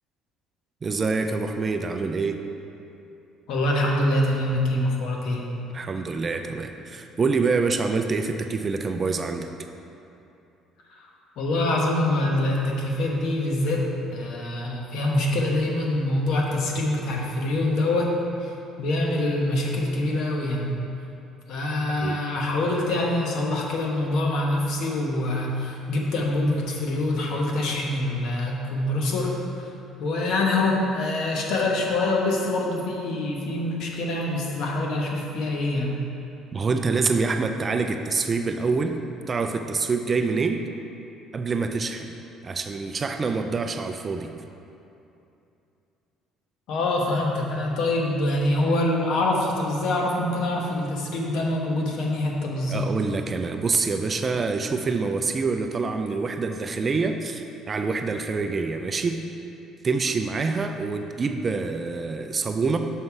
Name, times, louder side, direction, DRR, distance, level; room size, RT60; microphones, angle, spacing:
voice 1, 0.8-2.4 5.7-9.5 22.0-22.2 36.5-39.0 39.3-40.6 41.3-42.1 42.4-44.3 52.7-59.2 59.8-62.8, right 4 dB, 25° right, 6 dB, 0.3 m, -26 dB
voice 2, 3.5-5.5 11.4-18.1 18.4-18.5 18.8-20.7 21.5-29.3 30.0-36.0 46.7-52.9, left 1 dB, 65° left, -1 dB, 1.1 m, -25 dB
6.4 x 5.7 x 4.7 m, 2.8 s
cardioid pair, 155°, 0 cm